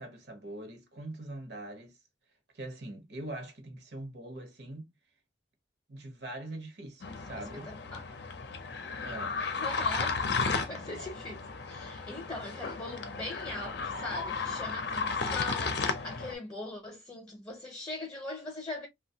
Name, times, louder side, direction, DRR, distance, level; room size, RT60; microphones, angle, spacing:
voice 1, 0.0-2.0 2.5-4.9 5.9-7.7 9.0-9.4, right 1 dB, 60° right, 0.9 m, -42 dB
sound 1, 7.0-16.3, left 4 dB, 60° left, 0.6 m, -34 dB
voice 2, 7.4-8.0 9.5-18.9, left 2 dB, 20° left, 0.7 m, -41 dB
2.9 x 2.2 x 2.7 m
head